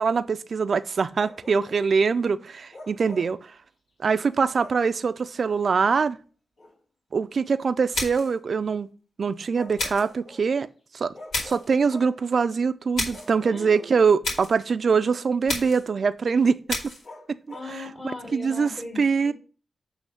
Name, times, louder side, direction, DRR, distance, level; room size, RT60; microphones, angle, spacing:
voice 1, 0.0-3.5 4.0-6.2 7.1-8.9 9.2-10.7 10.9-11.1 11.4-16.8 17.3-17.6 18.3-18.7 19.0-19.3, right 5 dB, 60° right, 0.5 m, -23 dB
Bark, 1.2-1.9 2.7-3.4 4.5-4.9 6.6-6.8 9.5-10.5 11.1-12.2 13.1-14.4 17.0-17.8, left 1 dB, 65° left, 2.6 m, -45 dB
sound 1, 7.9-8.4 9.8-10.1 11.3-11.7 12.9-13.3 14.2-14.6 15.5-15.9 16.7-17.1, left 2 dB, 85° left, 2.4 m, -30 dB
voice 2, 13.5-14.1 17.5-19.3, left 2 dB, 45° left, 3.6 m, -39 dB
8.4 x 3.2 x 6.4 m
cardioid pair, 60°, 0 cm